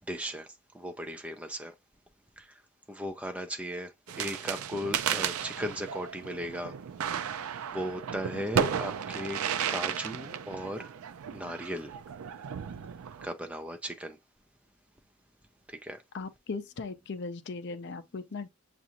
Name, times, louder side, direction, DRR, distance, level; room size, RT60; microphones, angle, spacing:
voice 1, 0.1-0.5 0.7-1.7 2.4-2.5 2.9-3.9 4.2-6.7 7.7-9.4 9.7-10.9 11.3-11.9 13.2-14.2 15.7-16.0, equal, 5° right, 0.4 m, -36 dB
sound 1, 4.1-13.3, right 8 dB, 75° right, 0.4 m, -34 dB
voice 2, 16.1-18.5, left 4 dB, 50° left, 0.5 m, -38 dB
7.2 x 2.5 x 2.8 m
head